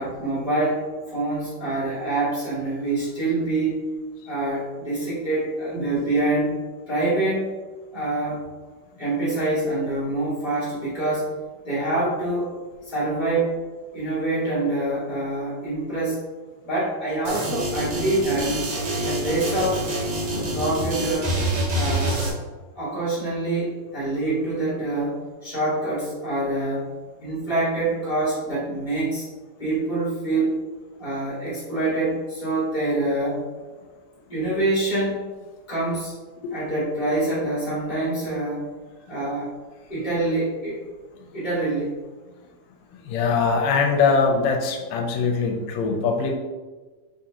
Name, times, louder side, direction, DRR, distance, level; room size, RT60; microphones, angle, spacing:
voice 1, 0.0-3.8 4.2-6.5 6.9-7.5 7.9-8.4 9.0-11.3 11.6-12.5 12.8-13.5 13.9-16.2 16.6-18.6 19.0-19.9 20.3-21.4 21.7-22.2 22.7-26.9 27.2-29.2 29.6-30.6 31.0-33.5 34.3-35.3 35.7-36.2 36.5-38.7 39.1-39.5 39.9-40.8 41.3-42.0, right 2 dB, 40° left, -9 dB, 0.6 m, -25 dB
sound 1, 17.2-22.3, right 1 dB, 65° right, 1.4 m, -26 dB
voice 2, 43.0-46.4, left 5 dB, 80° left, 3 dB, 1.7 m, -22 dB
4.5 x 3.7 x 2.7 m, 1.3 s
omnidirectional pair, 3.5 m